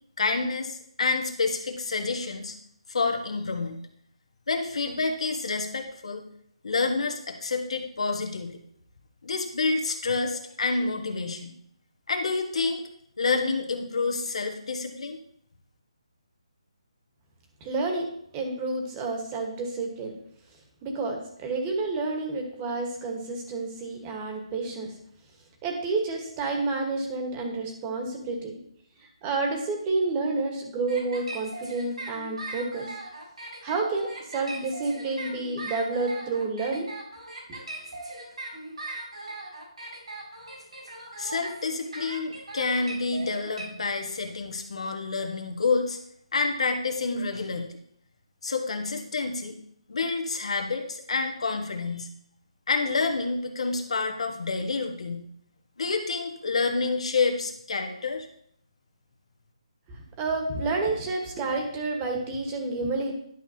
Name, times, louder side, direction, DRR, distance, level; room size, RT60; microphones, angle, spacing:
voice 1, 0.2-2.6 2.9-3.8 4.5-6.2 6.6-8.6 9.2-11.5 12.1-12.8 13.2-15.2 41.2-46.0 46.3-47.8 48.4-49.5 49.9-52.1 52.7-55.2 55.8-58.3, left 4 dB, 70° left, 4 dB, 1.4 m, -28 dB
voice 2, 17.6-18.1 18.3-20.1 20.8-24.9 25.6-28.6 29.2-32.9 33.6-36.9 37.5-37.6 59.9-63.1, right 3 dB, 20° right, 3 dB, 1.4 m, -29 dB
sound 1, 30.9-43.6, right 2 dB, 80° right, 3.8 m, -39 dB
11.0 x 6.1 x 2.9 m, 0.69 s
hypercardioid pair, 160°, 3 cm